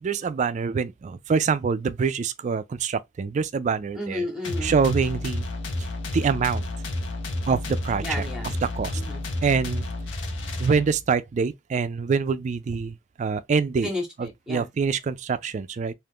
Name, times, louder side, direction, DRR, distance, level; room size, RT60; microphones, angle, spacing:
voice 1, 0.0-4.3 4.6-5.5 6.1-6.6 7.5-8.0 8.6-9.0 9.4-9.8 10.6-13.9 14.2-15.9, right 5 dB, 40° right, 0.3 m, -25 dB
voice 2, 4.0-4.8 8.0-8.5 8.9-9.2 13.8-14.7, left 1 dB, 5° right, 0.7 m, -32 dB
sound 1, 4.4-11.2, left 2 dB, 80° left, 0.7 m, -31 dB
2.5 x 2.4 x 3.5 m
head